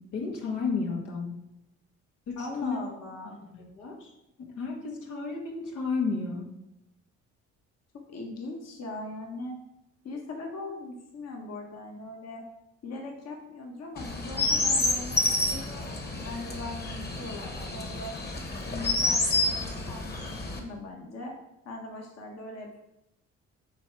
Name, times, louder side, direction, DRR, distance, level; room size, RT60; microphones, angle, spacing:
voice 1, 0.1-1.3 2.3-2.8 3.5-4.1 4.4-6.5, left 4 dB, 85° left, -1 dB, 1.7 m, -32 dB
voice 2, 2.4-3.4 8.1-9.6 10.0-12.4 12.8-18.2 18.6-21.3 21.6-22.8, left 2 dB, 55° left, 1 dB, 1.4 m, -40 dB
Chirp tweet, 14.0-20.6, left 2 dB, 35° left, 1.4 m, -29 dB
8.1 x 3.3 x 6.0 m, 0.90 s
cardioid pair, 90°, 30 cm